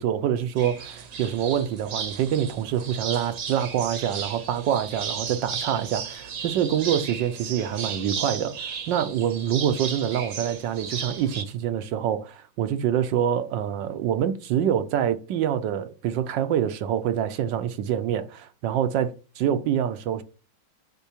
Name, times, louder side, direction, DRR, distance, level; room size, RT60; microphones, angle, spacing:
voice 1, 0.0-20.2, right 9 dB, 70° right, 1.3 m, -26 dB
sound 1, 0.6-11.5, right 6 dB, 50° right, 1.1 m, -35 dB
8.1 x 6.1 x 2.8 m
omnidirectional pair, 2.2 m